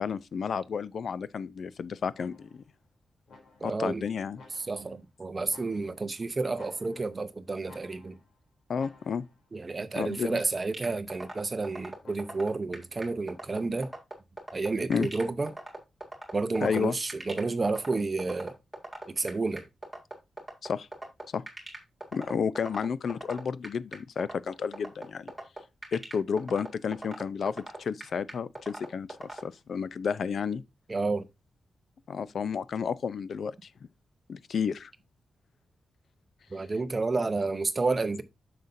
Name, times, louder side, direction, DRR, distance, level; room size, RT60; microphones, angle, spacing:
voice 1, 0.0-2.6 3.6-4.4 8.7-9.2 10.0-10.4 14.9-15.1 16.6-17.0 20.6-20.9 21.3-21.4 22.1-25.3 25.9-30.6 32.1-33.7 34.3-34.9, left 6 dB, 55° left, 0.5 m, -31 dB
sound 1, 2.1-2.7 3.3-3.9 4.3-5.0 5.5-6.1 6.5-7.3 7.6-8.4 8.7-9.5 9.9-10.5 12.0-12.6, left 3 dB, 85° left, 3.2 m, -55 dB
voice 2, 3.6-4.0 4.6-8.2 9.5-13.9 14.5-15.6 16.3-18.6 19.1-19.6 30.9-31.3 36.5-38.2, right 3 dB, 25° right, 0.7 m, -30 dB
sound 2, 10.7-29.4, right 2 dB, ahead, 2.1 m, -39 dB
9.5 x 6.7 x 2.6 m
wide cardioid pair, 170°, 0 cm